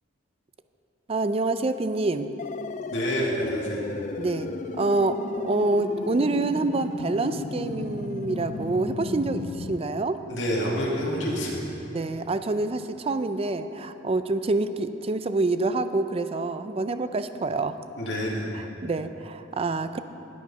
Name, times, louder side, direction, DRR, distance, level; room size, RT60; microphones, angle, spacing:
voice 1, 1.1-2.3 4.2-4.5 4.8-10.2 11.9-17.8 18.5-20.0, right 2 dB, 30° right, 11 dB, 0.4 m, -27 dB
sound 1, 2.4-9.8, left 3 dB, 40° left, 0.4 m, -34 dB
voice 2, 2.9-3.8 10.3-11.6 18.0-18.5, equal, 65° left, -5 dB, 2.3 m, -27 dB
18.5 x 6.6 x 5.5 m, 2.9 s
head